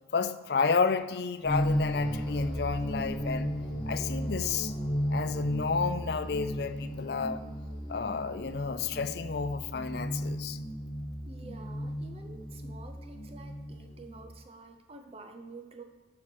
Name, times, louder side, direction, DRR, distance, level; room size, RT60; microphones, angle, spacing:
voice 1, 0.1-3.5 3.9-4.7 5.1-7.4 7.9-10.6, left 5 dB, 55° left, 0.4 m, -31 dB
sound 1, 1.4-14.2, equal, 25° left, 1.3 m, -34 dB
voice 2, 11.3-15.8, right 3 dB, 30° right, 0.6 m, -49 dB
8.8 x 4.8 x 6.0 m
head